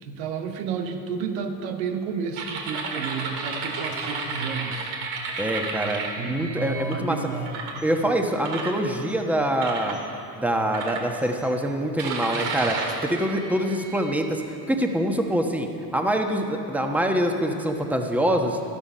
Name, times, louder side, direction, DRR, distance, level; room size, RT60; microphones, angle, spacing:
voice 1, 0.0-4.9 5.3-5.4 6.2-7.6, right 5 dB, 85° right, 6 dB, 1.1 m, -31 dB
sound 1, 2.3-6.9 7.5-7.8 8.4-9.2 9.6-10.0 10.7-11.4 12.0-14.3, right 4 dB, 65° right, 2.1 m, -32 dB
voice 2, 5.4-7.2 7.8-10.0 10.3-14.4 14.7-15.7 15.9-18.6, right 1 dB, 5° right, 3 dB, 1.1 m, -25 dB
12.5 x 11.5 x 5.6 m, 2.8 s
supercardioid pair, 85°, 49 cm